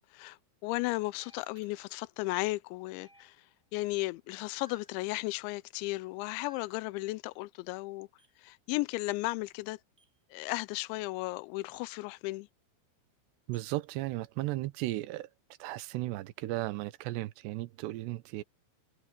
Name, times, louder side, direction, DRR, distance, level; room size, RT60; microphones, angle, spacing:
voice 1, 0.0-3.4 3.7-8.1 8.4-9.8 10.3-12.5, left 21 dB, 85° left, 2.7 m, -35 dB
sound 1, 1.2-1.9 3.0-3.7 4.7-5.1 6.4-6.9 8.2-8.5 10.0-10.3 11.7-11.9 13.5-13.7, right 1 dB, 15° right, 6.8 m, -62 dB
voice 2, 13.5-15.3 15.6-18.4, right 17 dB, 75° right, 2.7 m, -35 dB
omnidirectional pair, 5.7 m